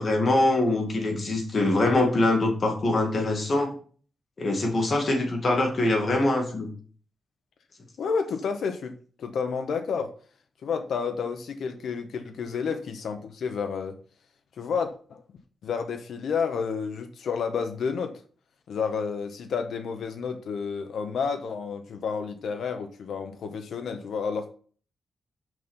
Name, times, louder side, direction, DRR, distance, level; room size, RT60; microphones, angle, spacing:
voice 1, 0.0-3.7 4.4-6.7, left 2 dB, 40° left, 2 dB, 2.2 m, -23 dB
voice 2, 8.0-8.9 9.2-10.1 10.6-14.0 14.6-15.2 15.6-18.2 18.7-24.5, left 6 dB, 80° left, 6 dB, 0.8 m, -30 dB
6.2 x 5.7 x 5.4 m, 0.43 s
wide cardioid pair, 135°, 0 cm